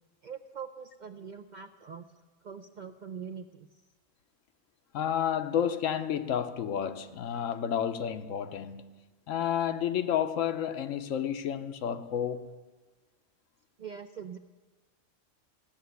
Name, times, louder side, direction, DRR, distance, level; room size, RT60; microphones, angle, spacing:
voice 1, 0.2-2.1 2.4-3.7 13.8-14.4, right 7 dB, 60° right, 0.5 m, -43 dB
voice 2, 4.9-8.9 9.3-12.5, left 9 dB, 85° left, 1.1 m, -31 dB
15.0 x 6.7 x 9.4 m
omnidirectional pair, 1.3 m